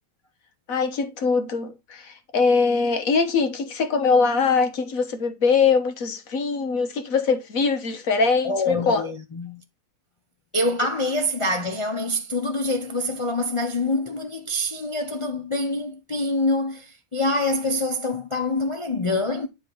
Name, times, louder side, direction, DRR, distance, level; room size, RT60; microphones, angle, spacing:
voice 1, 0.7-9.1, left 4 dB, 75° left, 1.5 m, -22 dB
voice 2, 8.4-9.6 10.5-19.5, left 2 dB, 35° left, 0.5 m, -25 dB
9.6 x 3.6 x 4.4 m
omnidirectional pair, 1.5 m